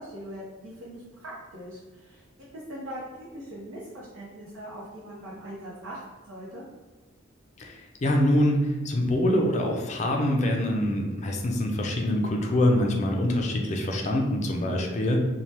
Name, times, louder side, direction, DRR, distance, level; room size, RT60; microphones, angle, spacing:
voice 1, 0.0-2.2 2.5-6.6 14.6-15.1, right 1 dB, 85° right, -6 dB, 0.6 m, -41 dB
voice 2, 7.6-15.2, left 1 dB, 35° left, 2 dB, 0.4 m, -25 dB
2.7 x 2.2 x 3.2 m, 1.3 s
head